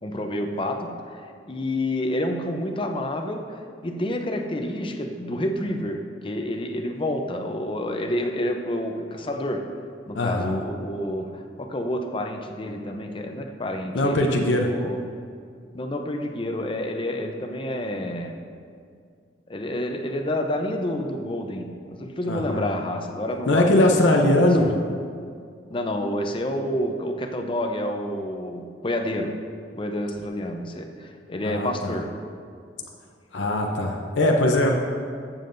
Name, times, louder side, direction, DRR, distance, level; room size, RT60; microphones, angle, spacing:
voice 1, 0.0-9.7 10.1-15.0 15.7-18.4 19.5-24.7 25.7-29.4 29.7-32.1, left 1 dB, 30° left, 4 dB, 0.6 m, -29 dB
voice 2, 10.1-10.6 13.9-14.7 22.3-22.7 23.5-24.7 31.4-31.9 33.3-34.7, left 1 dB, 90° left, 1 dB, 0.7 m, -21 dB
14.0 x 7.2 x 2.6 m, 2.2 s
head